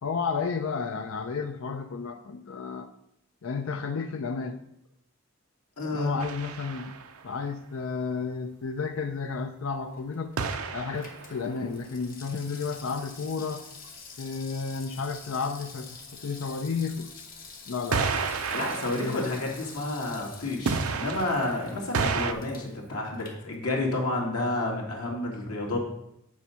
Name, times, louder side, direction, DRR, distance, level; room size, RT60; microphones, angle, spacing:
voice 1, 0.0-2.9 3.4-4.6 5.9-7.0 7.2-10.3 10.7-13.7 14.2-17.1 17.7-18.1 18.8-19.4, left 5 dB, 65° left, 7 dB, 0.5 m, -32 dB
voice 2, 5.8-6.2 18.5-25.8, left 2 dB, 90° left, -1 dB, 2.2 m, -30 dB
sound 1, 6.2-7.2 10.4-11.5 17.9-20.2 20.7-22.3, right 5 dB, 80° right, 0.6 m, -31 dB
Water tap faucet / Sink (filling or washing), 9.8-24.1 24.4-24.5, left 4 dB, 40° left, 1.2 m, -48 dB
8.6 x 4.4 x 5.7 m, 0.78 s
head